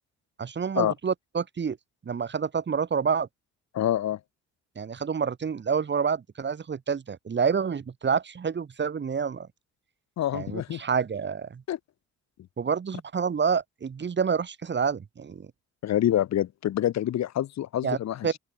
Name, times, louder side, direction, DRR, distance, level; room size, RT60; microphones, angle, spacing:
voice 1, 0.4-1.8 2.0-3.3 4.8-9.5 10.3-11.6 12.6-15.5 17.8-18.0 18.2-18.4, right 6 dB, 35° right, 1.7 m, -28 dB
voice 2, 3.7-4.2 10.2-10.8 11.7-11.8 15.8-18.4, left 12 dB, 65° left, 1.0 m, -26 dB
open air
cardioid pair, 90°, 30 cm